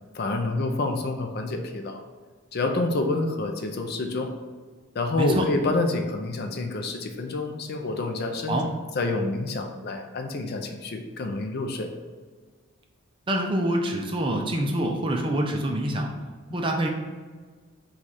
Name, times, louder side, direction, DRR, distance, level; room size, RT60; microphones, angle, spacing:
voice 1, 0.1-2.0 2.5-4.3 4.9-8.6 9.0-11.9, left 2 dB, 45° left, 4 dB, 0.4 m, -28 dB
voice 2, 13.3-16.1 16.5-16.9, right 1 dB, 25° right, 2 dB, 0.4 m, -26 dB
4.7 x 2.4 x 4.1 m, 1.4 s
head